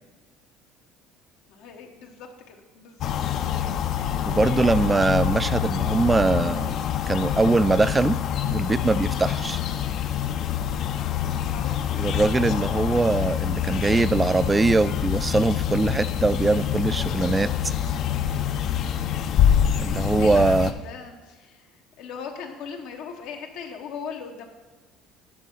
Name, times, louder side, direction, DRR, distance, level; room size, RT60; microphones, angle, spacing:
voice 1, 1.5-3.1 4.0-5.2 9.0-9.3 11.5-11.8 13.0-13.3 20.2-24.5, left 6 dB, 75° left, 2 dB, 1.1 m, -39 dB
sound 1, 3.0-20.7, left 9 dB, 50° left, 0.6 m, -26 dB
voice 2, 4.3-6.8 7.1-8.2 8.5-9.6 12.0-17.5 19.8-20.7, right 3 dB, 15° right, 15 dB, 0.3 m, -22 dB
9.9 x 5.5 x 5.4 m, 1.3 s
cardioid pair, 130°, 0 cm